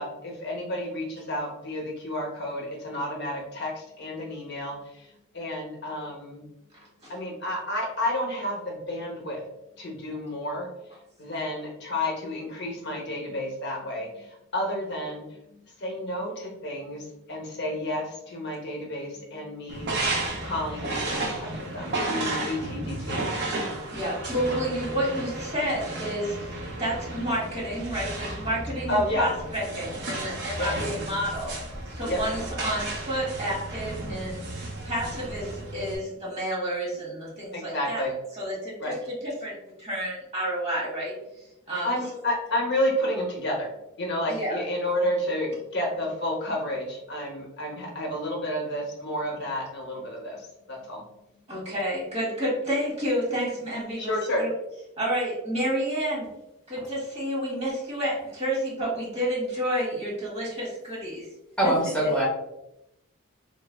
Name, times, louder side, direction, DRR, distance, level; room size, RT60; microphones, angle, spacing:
voice 1, 0.0-6.4 7.1-9.4 9.8-23.3 28.9-29.3 30.6-30.7 32.1-32.2 37.5-38.1 38.8-39.0 41.8-43.7 44.0-51.0 54.0-54.4, left 1 dB, 50° left, 0 dB, 0.7 m, -31 dB
sound 1, 19.7-35.9, right 2 dB, 50° right, 0.6 m, -33 dB
voice 2, 23.9-26.5 26.8-31.5 31.9-34.4 34.8-38.0 38.3-38.7 39.1-41.1 41.7-41.9 44.3-44.6 51.5-54.5 55.0-56.3 56.7-61.3 61.6-61.7, equal, 30° right, -5 dB, 1.4 m, -30 dB
voice 3, 61.6-62.2, right 1 dB, 5° left, -5 dB, 0.9 m, -23 dB
3.2 x 3.2 x 2.2 m, 0.89 s
head